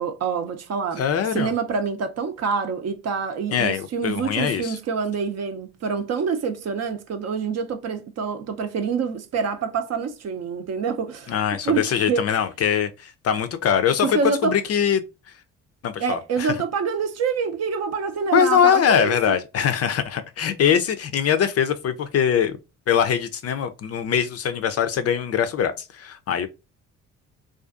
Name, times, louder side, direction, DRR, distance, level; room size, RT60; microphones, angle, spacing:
voice 1, 0.0-1.0 1.3-11.3 11.6-12.3 14.0-14.6 16.0-19.1, right 5 dB, 45° right, 0.6 m, -26 dB
voice 2, 1.0-1.5 3.5-4.8 11.3-15.0 15.8-16.5 18.3-22.6 22.9-26.5, left 8 dB, 45° left, 0.4 m, -22 dB
2.4 x 2.4 x 2.4 m
hypercardioid pair, 55°, 36 cm